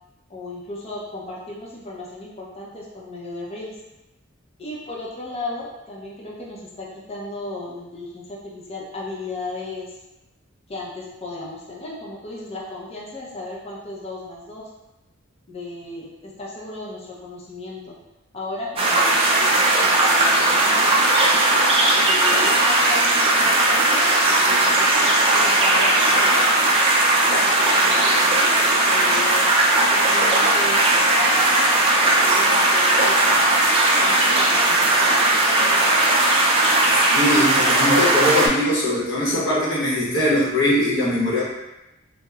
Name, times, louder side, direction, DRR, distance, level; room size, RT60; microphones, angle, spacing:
voice 1, 0.3-3.7 4.6-9.9 10.7-14.7 15.5-18.0 18.3-20.9 22.1-26.7 27.3-28.6 28.8-29.5 29.9-31.7 32.0-33.7 34.0-35.2, left 2 dB, 30° left, -4 dB, 0.6 m, -35 dB
sound 1, 18.8-38.5, right 2 dB, 30° right, 0.3 m, -18 dB
voice 2, 37.1-41.4, left 1 dB, 65° left, -6 dB, 0.8 m, -21 dB
3.1 x 2.0 x 2.3 m, 0.96 s
head